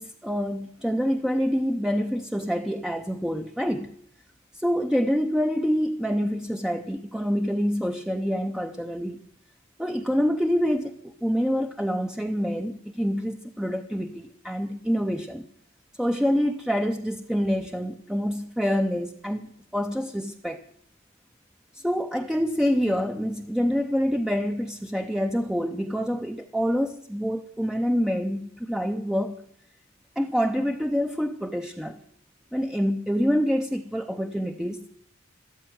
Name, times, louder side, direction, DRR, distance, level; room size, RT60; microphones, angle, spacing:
voice 1, 0.0-3.9 4.5-9.2 9.8-15.5 16.0-19.4 19.7-20.6 21.7-29.4 30.2-32.0 32.5-34.9, equal, 5° right, 0.6 m, -26 dB
13.5 x 13.5 x 7.8 m
head